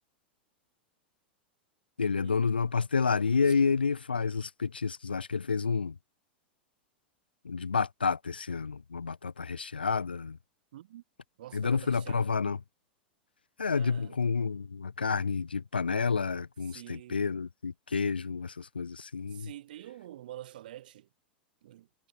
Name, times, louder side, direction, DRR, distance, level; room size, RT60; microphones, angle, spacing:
voice 1, 2.0-6.0 7.4-10.4 11.5-12.6 13.6-19.5, left 5 dB, 80° left, 0.5 m, -29 dB
voice 2, 10.7-11.0 11.4-12.3 13.7-14.2 16.7-17.2 19.3-21.1 21.6-21.9, right 13 dB, 65° right, 0.7 m, -47 dB
figure-of-eight pair, 90°, 5 cm